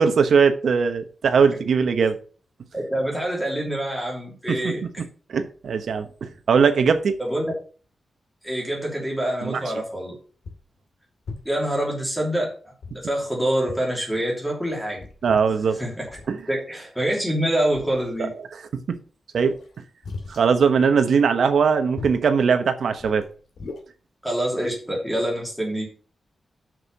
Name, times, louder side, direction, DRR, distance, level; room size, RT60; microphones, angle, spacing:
voice 1, 0.0-2.2 4.5-4.7 5.3-7.2 9.4-9.6 15.2-15.8 16.3-16.4 18.7-18.8 19.3-19.6 20.3-23.2, right 6 dB, 65° right, 8 dB, 1.1 m, -20 dB
voice 2, 2.7-4.9 7.2-7.4 8.4-10.2 11.4-12.5 12.9-15.0 15.8-16.1 16.5-18.3 24.2-25.9, right 1 dB, ahead, -2 dB, 3.0 m, -26 dB
sound 1, 10.0-10.1 10.4-10.7 11.2-11.7 12.8-13.3 13.7-13.9 14.2-14.3 14.7-15.5 16.0-16.4 17.1-17.3 17.7-18.3 19.3-20.5 22.0-22.3 22.9-23.8, left 3 dB, 70° left, 2.3 m, -39 dB
6.6 x 6.3 x 5.4 m, 0.39 s
wide cardioid pair, 175°, 0 cm